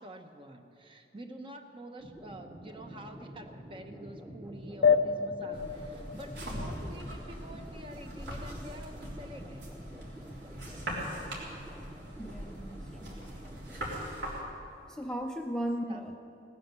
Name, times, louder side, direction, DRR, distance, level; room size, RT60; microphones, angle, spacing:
voice 1, 0.0-9.7 15.6-16.0, right 1 dB, 30° right, 5 dB, 1.0 m, -47 dB
sound 1, 2.0-14.0, equal, 15° right, 1.2 m, -47 dB
sound 2, 4.8-7.8, left 6 dB, 80° left, 0.5 m, -29 dB
sound 3, 5.5-14.4, equal, 70° right, 3.6 m, -41 dB
voice 2, 12.2-13.2 14.9-16.2, equal, 5° left, 2 dB, 0.6 m, -36 dB
18.0 x 10.0 x 6.8 m, 2.7 s
head